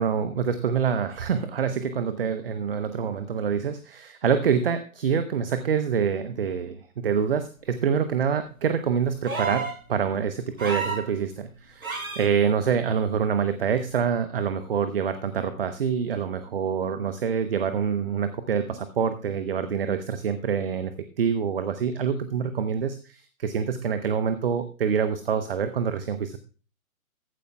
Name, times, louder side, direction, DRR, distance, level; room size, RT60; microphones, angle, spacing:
voice 1, 0.0-20.9 21.2-26.4, right 7 dB, 40° right, 10 dB, 0.9 m, -26 dB
sound 1, 9.2-9.8 10.6-11.1 11.8-12.3 13.8-13.9, right 4 dB, 75° right, 6.3 m, -30 dB
15.0 x 12.0 x 2.3 m, 0.37 s
figure-of-eight pair, 130°, 42 cm